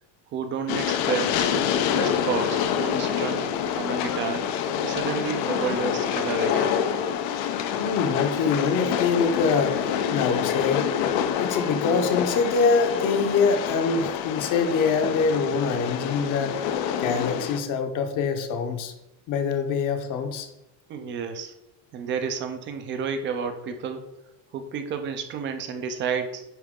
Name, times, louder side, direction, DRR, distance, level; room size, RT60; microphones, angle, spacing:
voice 1, 0.3-1.5 1.9-4.5 4.8-6.8 20.9-21.5 21.9-24.1 24.5-26.4, right 6 dB, 25° right, 7 dB, 0.3 m, -31 dB
Train, 0.7-17.6, left 8 dB, 85° left, 0.8 m, -27 dB
voice 2, 7.8-9.8 10.1-10.9 11.4-16.6 17.0-18.9 19.3-20.5, left 5 dB, 40° left, 7 dB, 0.8 m, -24 dB
10.0 x 3.8 x 3.6 m, 0.92 s
cardioid pair, 170°, 49 cm